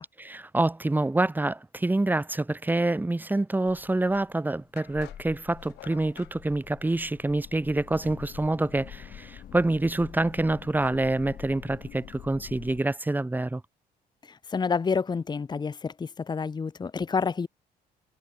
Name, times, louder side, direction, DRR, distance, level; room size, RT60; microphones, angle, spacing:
voice 1, 0.2-13.6, right 2 dB, 10° right, 2.3 m, -27 dB
sound 1, 3.7-12.8, left 10 dB, 55° left, 6.1 m, -46 dB
sound 2, 4.8-6.4, left 18 dB, 85° left, 4.0 m, -49 dB
voice 2, 14.2-17.5, left 5 dB, 25° left, 1.5 m, -29 dB
cardioid pair, 110°, 17 cm